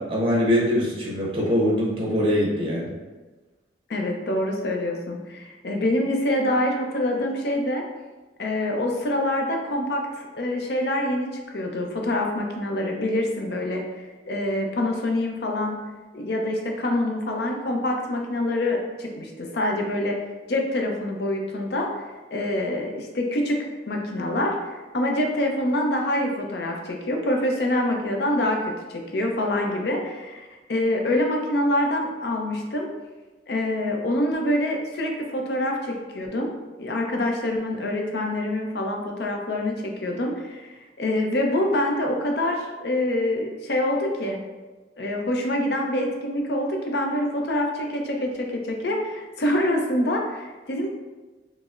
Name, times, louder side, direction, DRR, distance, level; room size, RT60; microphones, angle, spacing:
voice 1, 0.0-2.9, equal, 30° right, -3 dB, 0.7 m, -23 dB
voice 2, 3.9-7.8 8.4-15.8 16.1-20.2 20.5-22.1 22.3-23.6 23.9-32.9 33.5-36.5 36.8-44.4 45.0-50.9, left 1 dB, 65° left, 1 dB, 0.5 m, -26 dB
4.8 x 2.0 x 2.4 m, 1.2 s
head